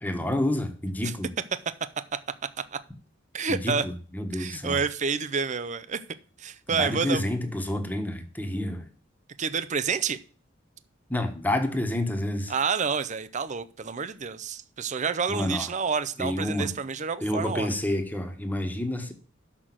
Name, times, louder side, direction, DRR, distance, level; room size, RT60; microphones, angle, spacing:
voice 1, 0.0-1.3 3.5-4.8 6.7-8.9 11.1-12.5 15.3-15.7 16.2-16.8 17.2-19.1, left 1 dB, 10° left, 1.3 m, -29 dB
voice 2, 3.3-3.8 4.3-6.0 6.4-7.2 9.4-10.2 12.5-17.7, right 5 dB, 40° right, 0.6 m, -29 dB
6.4 x 6.1 x 7.4 m
head